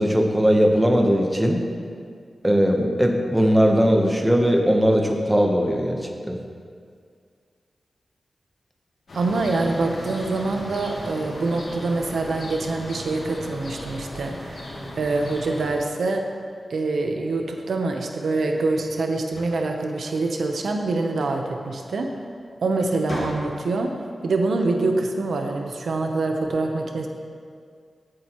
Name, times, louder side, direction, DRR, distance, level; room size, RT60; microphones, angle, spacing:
voice 1, 0.0-1.6 2.4-6.0 6.3-6.4, equal, 10° right, 2 dB, 1.0 m, -19 dB
sound 1, 9.1-15.8, left 1 dB, 70° left, 2.5 m, -36 dB
voice 2, 9.1-16.2 16.7-22.1 22.6-23.9 24.2-27.1, right 3 dB, 85° right, 3 dB, 0.9 m, -25 dB
sound 2, 19.2-20.6 22.1-22.3 22.7-23.9, left 1 dB, 50° left, 1.8 m, -37 dB
15.5 x 7.7 x 3.1 m, 2.2 s
wide cardioid pair, 110°, 0 cm